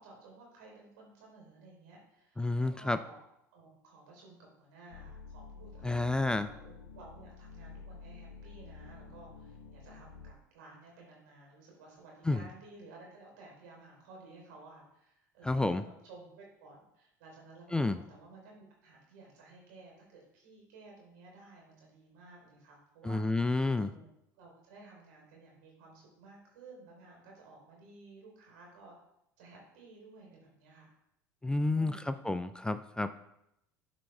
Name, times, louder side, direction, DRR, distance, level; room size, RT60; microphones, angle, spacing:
voice 1, 0.0-3.2 3.5-24.1 24.3-28.9 29.4-30.9 31.7-32.2, right 3 dB, 70° right, -1 dB, 3.4 m, -55 dB
voice 2, 2.4-3.0 5.8-6.5 12.3-12.4 15.4-15.8 17.7-18.0 23.0-23.9 31.4-33.2, left 2 dB, 10° left, 11 dB, 0.4 m, -30 dB
sound 1, 4.9-10.3, left 4 dB, 80° left, 0.6 m, -50 dB
12.5 x 4.7 x 3.2 m, 0.82 s
hypercardioid pair, 70°, 10 cm